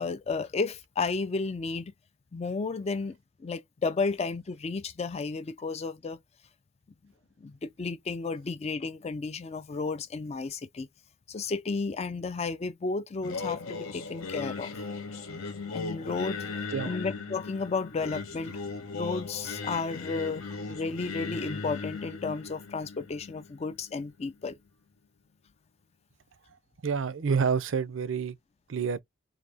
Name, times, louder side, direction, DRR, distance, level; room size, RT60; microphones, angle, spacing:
voice 1, 0.0-1.9 2.3-6.2 7.4-10.9 11.3-14.7 15.7-16.5 16.8-18.6 18.9-24.6, left 4 dB, 30° left, 0.3 m, -33 dB
Singing, 13.2-24.3, left 4 dB, 75° left, 0.9 m, -38 dB
voice 2, 26.8-28.4 28.7-29.0, right 6 dB, 65° right, 0.5 m, -28 dB
3.8 x 2.7 x 3.4 m
head